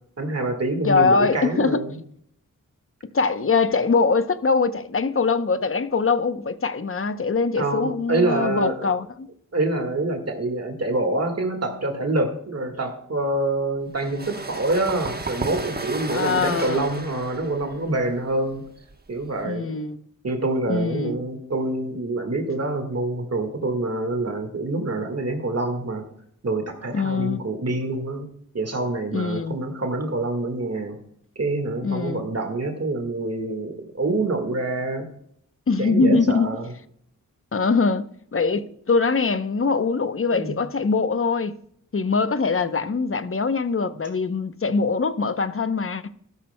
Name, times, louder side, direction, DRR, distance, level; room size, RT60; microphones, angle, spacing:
voice 1, 0.2-2.0 7.6-8.9 9.5-18.7 19.1-19.7 20.2-26.1 26.4-28.3 28.5-31.0 31.4-35.1 35.8-36.7 40.3-40.5 43.9-44.0, right 2 dB, 50° right, 1.7 m, -26 dB
voice 2, 0.8-1.8 3.1-9.3 16.1-17.0 19.4-20.0 20.7-21.2 26.9-27.4 29.1-29.6 31.8-32.2 35.7-36.5 37.5-38.0 38.3-41.5 41.9-46.0, left 4 dB, 40° left, 0.7 m, -22 dB
sound 1, 13.9-19.4, right 3 dB, 30° right, 1.1 m, -34 dB
13.0 x 12.5 x 2.2 m
cardioid pair, 55°, 32 cm